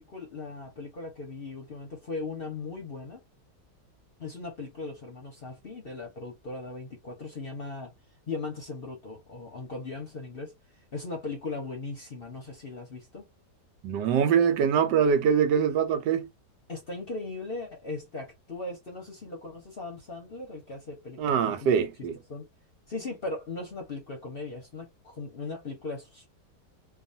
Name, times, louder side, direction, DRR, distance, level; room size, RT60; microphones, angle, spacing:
voice 1, 0.0-3.2 4.2-7.9 8.3-10.5 10.9-13.2 16.7-21.9 22.3-22.5 22.9-26.3, left 3 dB, 45° left, 0.8 m, -38 dB
voice 2, 13.8-16.3 21.2-22.1, right 7 dB, 80° right, 1.3 m, -23 dB
3.0 x 2.4 x 2.5 m
omnidirectional pair, 1.8 m